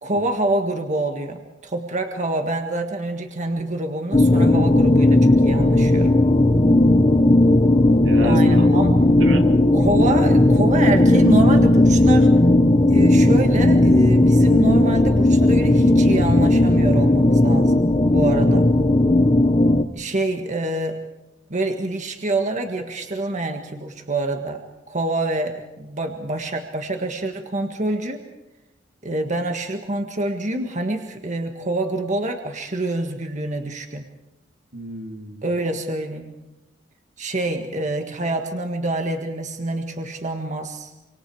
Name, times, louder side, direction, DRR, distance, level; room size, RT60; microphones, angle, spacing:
voice 1, 0.0-6.1 8.2-9.0 9.7-12.3 12.9-18.7 19.9-21.1 21.5-28.2 29.0-34.1 35.4-36.4 37.2-40.9, right 2 dB, 40° right, 4 dB, 1.7 m, -26 dB
sound 1, 4.1-19.8, left 1 dB, 25° left, 1.0 m, -15 dB
voice 2, 6.6-7.4 8.0-9.5 34.7-35.5, right 1 dB, 75° right, 3 dB, 2.7 m, -33 dB
27.0 x 26.0 x 4.8 m, 0.98 s
head